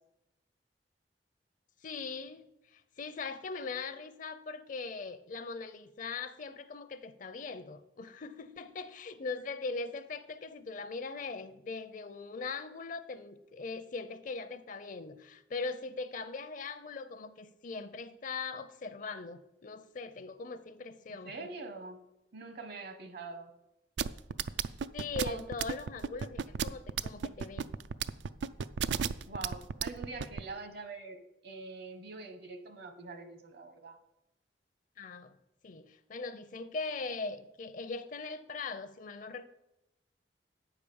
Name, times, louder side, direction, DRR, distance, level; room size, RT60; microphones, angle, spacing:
voice 1, 1.8-21.3 24.9-27.7 35.0-35.3 35.6-39.4, left 4 dB, 45° left, 12 dB, 0.5 m, -40 dB
voice 2, 21.1-22.0 22.3-23.5 25.2-25.4 29.3-34.0, right 3 dB, 60° right, 8 dB, 1.1 m, -44 dB
sound 1, 24.0-30.4, right 7 dB, 80° right, 0.4 m, -32 dB
9.2 x 4.9 x 7.0 m, 0.91 s
head